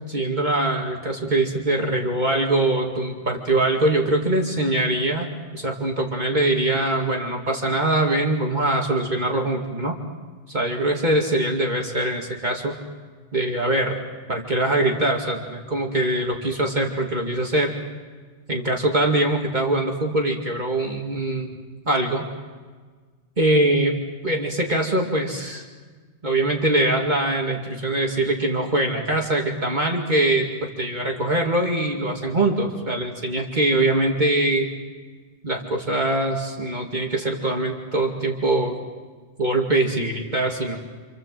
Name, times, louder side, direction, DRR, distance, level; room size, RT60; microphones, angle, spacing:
voice 1, 0.1-10.0 10.5-12.7 13.3-14.0 14.3-17.7 18.5-21.5 21.9-22.3 23.4-24.0 24.2-25.6 26.2-34.7 35.4-38.8 39.4-40.8, right 1 dB, 40° right, 0 dB, 2.5 m, -23 dB
28.5 x 27.5 x 7.7 m, 1.5 s
omnidirectional pair, 1.2 m